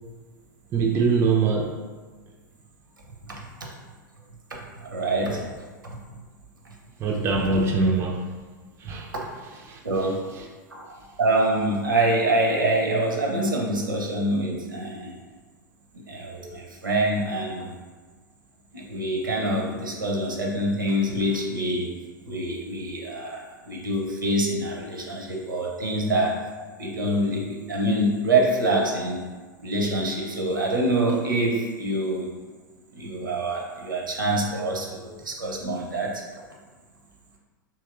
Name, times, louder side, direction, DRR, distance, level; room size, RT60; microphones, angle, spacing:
voice 1, 0.7-1.7 7.0-8.2 8.8-9.1 9.7-9.8, right 4 dB, 20° right, 0 dB, 0.3 m, -22 dB
voice 2, 4.5-5.4 9.8-10.2 10.7-15.1 16.1-17.7 18.7-21.9 22.2-26.4 26.8-29.2 29.6-32.3 32.9-36.2, right 1 dB, 75° right, -1 dB, 0.6 m, -25 dB
3.3 x 2.8 x 2.4 m, 1.4 s
figure-of-eight pair, 90°, 11 cm